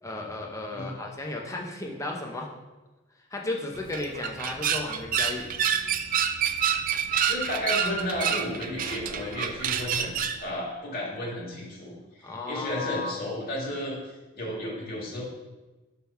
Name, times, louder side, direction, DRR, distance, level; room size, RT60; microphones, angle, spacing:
voice 1, 0.0-2.5 3.3-5.5 12.2-13.2, left 2 dB, 15° left, 0 dB, 0.8 m, -34 dB
sound 1, 3.8-10.4, right 8 dB, 40° right, 0.3 m, -28 dB
voice 2, 7.3-15.2, left 1 dB, 45° left, -4 dB, 2.0 m, -33 dB
6.1 x 3.6 x 5.7 m, 1.1 s
head